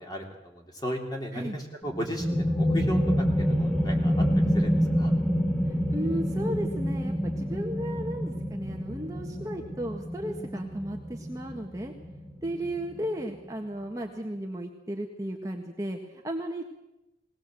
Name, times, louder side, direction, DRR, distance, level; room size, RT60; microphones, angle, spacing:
voice 1, 0.0-5.1 10.5-10.6, equal, 20° left, 1 dB, 3.5 m, -36 dB
sound 1, 1.8-13.2, equal, 5° left, 2.5 m, -27 dB
voice 2, 5.7-11.9 12.4-16.6, right 1 dB, 20° right, 1 dB, 1.5 m, -35 dB
20.5 x 18.5 x 7.7 m, 0.96 s
head